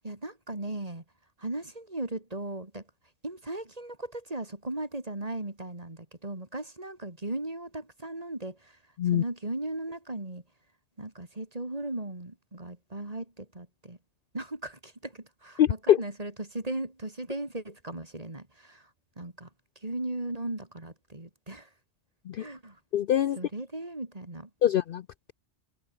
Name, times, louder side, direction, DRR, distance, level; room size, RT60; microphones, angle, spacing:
voice 1, 0.0-1.0 1.4-2.8 3.2-8.8 9.1-10.4 11.0-14.0 14.3-18.9 19.2-19.5 19.8-21.7 22.4-22.8 23.4-24.5, right 2 dB, 35° right, 3.4 m, -37 dB
voice 2, 15.6-16.0 22.3-22.5 22.9-23.4 24.6-25.0, left 11 dB, 60° left, 0.6 m, -23 dB
omnidirectional pair, 1.2 m